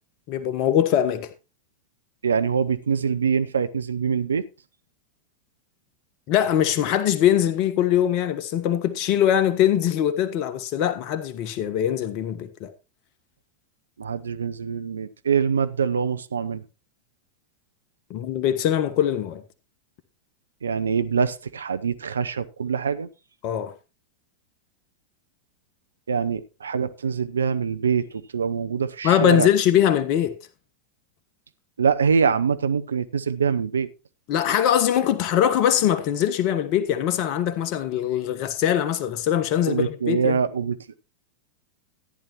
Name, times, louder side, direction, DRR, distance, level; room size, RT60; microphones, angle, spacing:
voice 1, 0.3-1.3 6.3-12.7 18.1-19.4 23.4-23.7 29.0-30.4 34.3-40.4, left 10 dB, 40° left, 1.2 m, -22 dB
voice 2, 2.2-4.5 14.0-16.6 20.6-23.1 26.1-29.5 31.8-33.9 39.7-41.0, right 6 dB, 70° right, 0.7 m, -24 dB
14.0 x 10.5 x 3.0 m
figure-of-eight pair, 90°, 0 cm